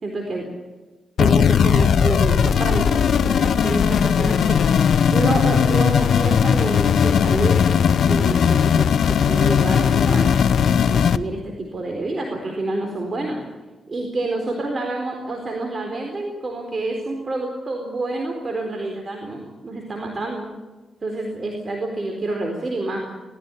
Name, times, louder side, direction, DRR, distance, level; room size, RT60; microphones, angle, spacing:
voice 1, 0.0-0.5 1.2-10.3 10.9-13.4 13.9-20.5 21.0-23.0, right 2 dB, 40° right, 2 dB, 4.2 m, -28 dB
sound 1, 1.2-11.2, left 7 dB, 70° left, 0.8 m, -18 dB
19.0 x 15.0 x 9.9 m, 1.2 s
cardioid pair, 80°, 0 cm